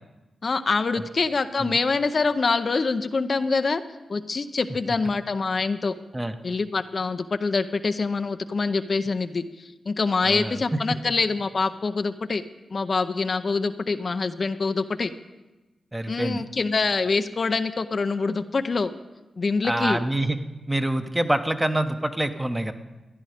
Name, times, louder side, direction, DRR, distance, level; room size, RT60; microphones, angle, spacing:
voice 1, 0.4-3.8 4.1-5.9 6.4-12.4 12.7-15.1 16.1-18.9 19.4-20.0, left 4 dB, 50° left, 9 dB, 0.6 m, -25 dB
voice 2, 10.2-11.0 15.9-16.4 19.6-20.4 20.7-22.7, right 1 dB, 15° right, 7 dB, 1.0 m, -26 dB
15.0 x 10.5 x 5.1 m, 1.1 s
cardioid pair, 60°, 0 cm